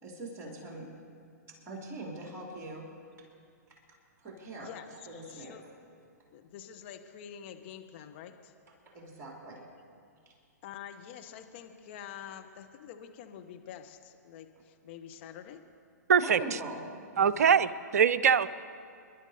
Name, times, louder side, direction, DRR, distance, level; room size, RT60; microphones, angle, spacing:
voice 1, 0.0-0.9 1.5-2.9 3.2-3.3 3.7-3.8 4.2-4.7 5.1-5.6 8.9-9.7 16.2-16.8 17.2-17.3, right 2 dB, 25° right, 0 dB, 3.0 m, -42 dB
voice 2, 4.6-5.6 6.3-8.5 10.6-15.6, left 9 dB, 40° left, 6 dB, 1.2 m, -47 dB
voice 3, 16.1-16.4 17.2-18.5, right 7 dB, 60° right, 14 dB, 0.6 m, -23 dB
26.0 x 11.5 x 4.2 m, 2.3 s
figure-of-eight pair, 115°, 9 cm